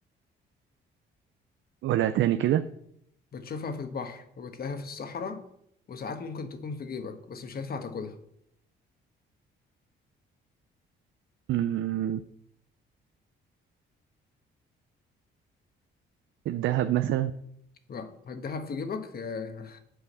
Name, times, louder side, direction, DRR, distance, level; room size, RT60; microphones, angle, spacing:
voice 1, 1.8-2.6 11.5-12.2 16.5-17.3, right 12 dB, 75° right, 10 dB, 0.5 m, -25 dB
voice 2, 3.3-5.4 5.9-8.1 17.9-19.8, left 5 dB, 50° left, 8 dB, 1.2 m, -36 dB
8.0 x 4.9 x 6.6 m, 0.73 s
cardioid pair, 90°, 20 cm